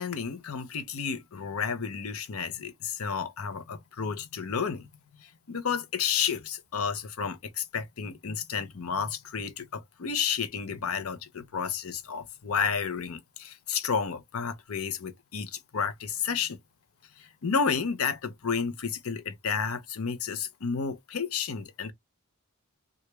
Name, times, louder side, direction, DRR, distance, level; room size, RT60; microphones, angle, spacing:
voice 1, 0.0-4.9 5.2-16.6 17.2-21.9, left 6 dB, 85° left, 0.6 m, -31 dB
2.9 x 2.4 x 3.2 m
head